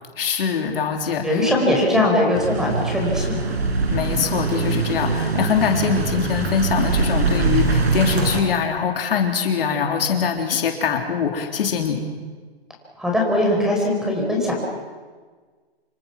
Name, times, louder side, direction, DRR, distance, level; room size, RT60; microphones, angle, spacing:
voice 1, 0.2-1.4 3.9-12.0, left 6 dB, 60° left, 3 dB, 3.5 m, -23 dB
voice 2, 1.2-3.5 13.0-14.6, left 1 dB, ahead, -1 dB, 5.0 m, -20 dB
sound 1, 2.3-8.4, right 4 dB, 80° right, 6.0 m, -22 dB
27.5 x 23.5 x 6.1 m, 1.5 s
hypercardioid pair, 150°, 31 cm